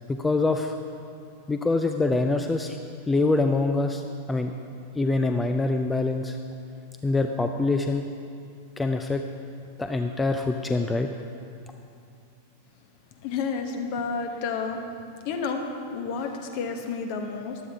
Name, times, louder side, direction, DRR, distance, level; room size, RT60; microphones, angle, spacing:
voice 1, 0.1-0.7 1.5-2.8 3.1-4.0 4.3-4.5 4.9-6.4 7.0-8.1 8.8-9.2 9.8-11.1, left 3 dB, 10° left, 6 dB, 0.5 m, -24 dB
voice 2, 13.2-14.8 15.2-17.6, left 5 dB, 45° left, 4 dB, 1.2 m, -30 dB
15.0 x 11.0 x 3.5 m, 2.5 s
figure-of-eight pair, 90°, 0 cm